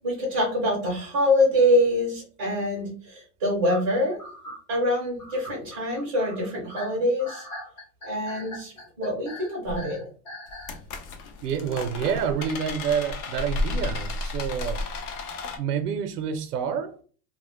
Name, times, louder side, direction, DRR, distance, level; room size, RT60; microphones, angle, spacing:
voice 1, 0.0-4.2 4.7-7.4 8.0-10.0, left 1 dB, 15° right, 0.4 m, -25 dB
sound 1, 3.7-10.8, equal, 25° left, 0.7 m, -41 dB
sound 2, 9.7-9.8 10.5-15.6, left 2 dB, 75° left, 0.7 m, -32 dB
voice 2, 11.4-14.8 15.6-16.9, right 7 dB, 90° right, 0.5 m, -28 dB
2.1 x 2.1 x 3.0 m
supercardioid pair, 180°, 46 cm